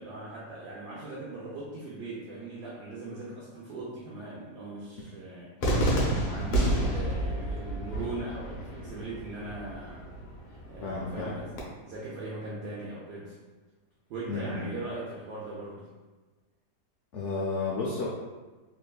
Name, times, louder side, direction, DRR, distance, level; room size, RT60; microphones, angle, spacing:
voice 1, 0.0-5.5 6.0-10.0 10.5-11.5 11.8-13.4 14.1-15.9, right 2 dB, 75° right, -6 dB, 1.1 m, -39 dB
Cheering / Fireworks, 5.6-11.6, right 1 dB, 60° left, 0.9 m, -30 dB
voice 2, 10.8-11.4 14.3-14.7 17.1-18.1, left 3 dB, 80° left, -5 dB, 0.6 m, -32 dB
3.4 x 3.0 x 2.3 m, 1.3 s
omnidirectional pair, 1.8 m